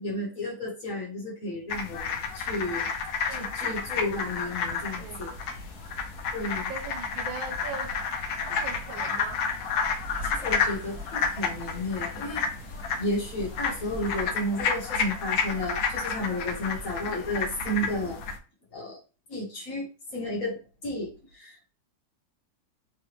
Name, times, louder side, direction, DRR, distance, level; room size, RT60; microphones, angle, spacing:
voice 1, 0.0-2.9 3.3-5.3 6.3-6.7 10.2-12.5 13.0-18.2 18.7-19.0 19.3-21.6, left 1 dB, 50° left, 1.5 m, -32 dB
sound 1, 1.7-18.4, left 5 dB, 65° left, 1.0 m, -31 dB
voice 2, 3.2-4.2 5.0-5.4 6.7-7.9 8.5-9.5, right 5 dB, 80° right, 1.5 m, -40 dB
sound 2, 3.7-14.2, left 1 dB, 40° right, 1.3 m, -47 dB
3.9 x 3.4 x 3.0 m
omnidirectional pair, 2.1 m